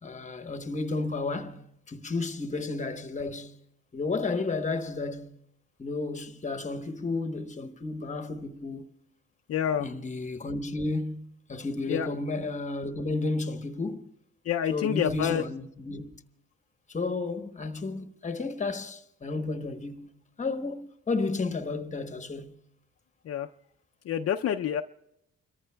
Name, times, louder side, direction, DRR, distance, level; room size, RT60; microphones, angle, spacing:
voice 1, 0.0-3.6 3.9-5.4 5.8-8.9 9.8-14.1 14.7-16.2 16.9-20.1 20.4-22.6, left 3 dB, 25° left, 1.0 m, -32 dB
voice 2, 9.5-9.9 11.9-12.1 14.5-15.4 23.3-23.5 24.1-24.8, left 9 dB, 50° left, 0.5 m, -27 dB
30.0 x 14.0 x 2.3 m
cardioid pair, 90°, 30 cm